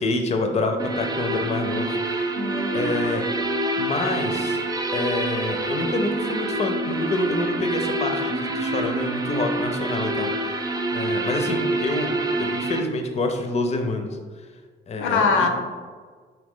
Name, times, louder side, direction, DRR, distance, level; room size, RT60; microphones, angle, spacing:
voice 1, 0.0-2.4 2.7-3.3 3.8-4.6 4.9-10.6 10.9-14.1 14.9-15.5, left 2 dB, 35° left, 5 dB, 0.5 m, -27 dB
sound 1, 0.8-12.8, right 2 dB, 20° right, 0.4 m, -26 dB
voice 2, 2.4-3.0 15.0-15.5, left 4 dB, 85° left, 3 dB, 0.6 m, -23 dB
3.9 x 2.8 x 3.6 m, 1.5 s
cardioid pair, 90°, 20 cm